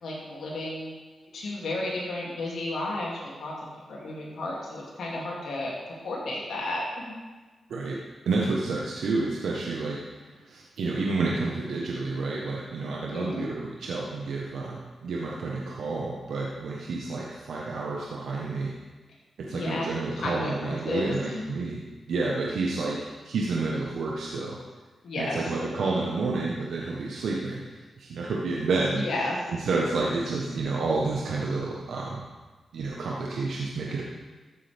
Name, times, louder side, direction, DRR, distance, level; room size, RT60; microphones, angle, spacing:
voice 1, 0.0-0.9 1.3-3.5 3.9-5.7 6.0-7.2 13.1-13.5 19.5-19.8 20.1-21.4 25.0-25.7 28.9-29.4, left 2 dB, 75° left, -4 dB, 2.8 m, -32 dB
voice 2, 7.7-18.7 19.4-21.8 22.1-23.0 23.2-24.6 25.2-29.0 29.5-32.3 32.7-34.0, right 3 dB, 80° right, -3 dB, 1.2 m, -30 dB
14.0 x 7.6 x 3.6 m, 1.3 s
supercardioid pair, 40°, 0 cm